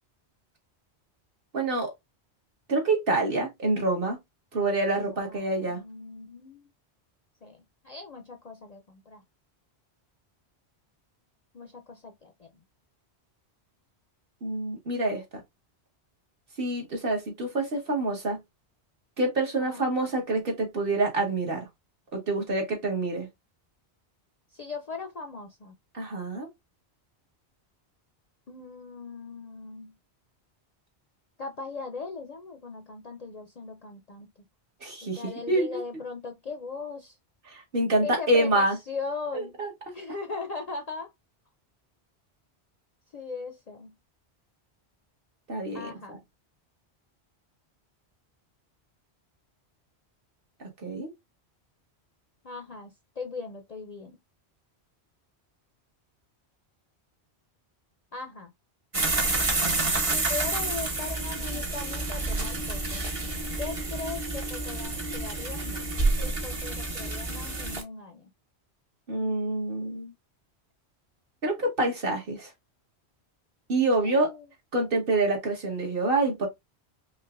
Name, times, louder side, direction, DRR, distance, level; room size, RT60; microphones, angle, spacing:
voice 1, 1.5-1.9 2.7-4.2 4.5-5.8 14.4-15.2 16.6-18.4 19.2-21.6 22.1-23.3 25.9-26.5 34.8-35.8 37.5-38.8 39.3-39.7 45.5-46.2 50.6-51.1 69.1-70.1 71.4-72.5 73.7-74.3 74.7-76.5, right 2 dB, 55° right, 1.5 m, -27 dB
voice 2, 5.1-6.7 7.4-9.2 11.5-12.5 19.6-19.8 24.5-25.7 28.5-30.0 31.4-34.3 35.0-37.1 38.0-39.6 39.9-41.1 43.1-43.9 45.7-46.1 52.4-54.2 58.1-58.5 60.0-63.0 63.6-65.9 66.2-68.3 74.0-74.5, left 4 dB, 50° left, 0.5 m, -39 dB
sound 1, 58.9-67.8, right 2 dB, 35° right, 0.9 m, -29 dB
5.3 x 2.3 x 2.4 m
omnidirectional pair, 1.1 m